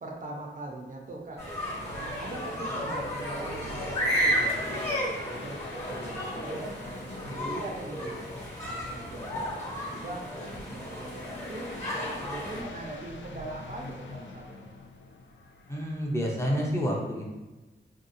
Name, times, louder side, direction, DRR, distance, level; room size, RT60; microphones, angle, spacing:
voice 1, 0.0-1.4 1.9-5.6 5.9-9.4 9.7-14.6, right 2 dB, 45° right, -1 dB, 0.5 m, -41 dB
sound 1, 1.2-16.4, left 2 dB, 85° left, 0.4 m, -47 dB
sound 2, 1.4-12.6, equal, 35° left, 1.1 m, -33 dB
voice 2, 15.7-17.4, equal, 15° left, -3 dB, 0.6 m, -29 dB
3.8 x 2.7 x 2.5 m, 1.1 s
wide cardioid pair, 140°, 19 cm